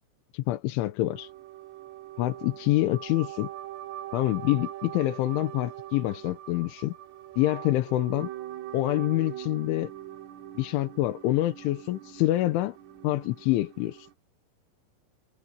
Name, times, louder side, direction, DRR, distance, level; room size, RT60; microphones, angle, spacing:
voice 1, 0.3-1.3 2.2-3.5 4.1-6.9 7.4-8.3 8.7-9.9 10.6-12.8 13.0-14.1, left 16 dB, 80° left, 3.5 m, -26 dB
sound 1, 1.1-14.1, right 13 dB, 90° right, 4.8 m, -42 dB
omnidirectional pair, 5.6 m